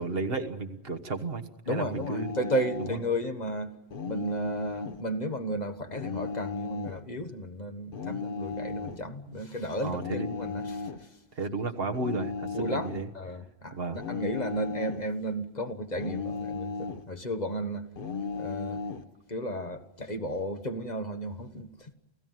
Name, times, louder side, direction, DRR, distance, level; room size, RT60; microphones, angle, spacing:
voice 1, 0.0-2.3 2.9-3.0 9.3-9.4 9.8-10.3 11.3-13.1 13.7-14.0, right 3 dB, 65° right, 1.6 m, -33 dB
voice 2, 1.7-3.7 4.1-11.1 12.5-17.9 18.3-18.8 19.3-21.9, equal, 45° left, 1.5 m, -34 dB
sound 1, 1.9-3.0 3.9-5.0 5.9-7.0 7.9-9.0 9.9-11.1 11.9-13.1 13.9-15.1 15.9-17.1 18.0-19.1, left 5 dB, 60° left, 1.2 m, -35 dB
29.0 x 16.0 x 9.3 m
omnidirectional pair, 1.1 m